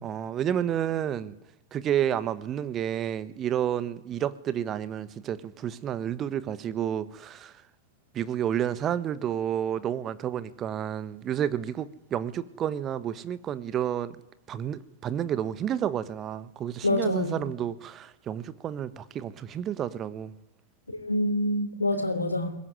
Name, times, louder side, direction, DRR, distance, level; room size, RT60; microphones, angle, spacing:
voice 1, 0.0-1.3 1.7-7.6 8.1-14.2 14.5-20.3, right 10 dB, 30° right, 1.3 m, -30 dB
voice 2, 16.8-17.4 20.9-22.6, left 1 dB, 80° left, 3.3 m, -26 dB
22.5 x 20.5 x 9.7 m
figure-of-eight pair, 90°, 0 cm